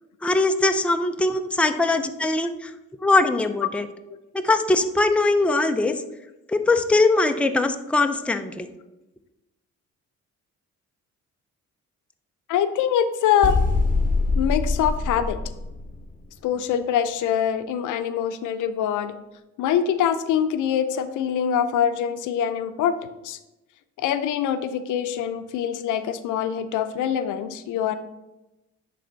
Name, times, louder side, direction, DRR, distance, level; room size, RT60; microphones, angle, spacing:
voice 1, 0.2-2.7 3.0-3.9 4.3-6.0 6.5-8.7, left 2 dB, 5° left, 7 dB, 0.5 m, -21 dB
voice 2, 12.5-13.6 14.4-15.4 16.4-19.2 19.6-23.0 23.2-23.4 24.0-28.0, left 9 dB, 80° left, 10 dB, 0.6 m, -24 dB
sound 1, 13.4-16.2, left 3 dB, 25° left, 1.0 m, -23 dB
10.0 x 3.4 x 3.9 m, 0.98 s
cardioid pair, 90°, 30 cm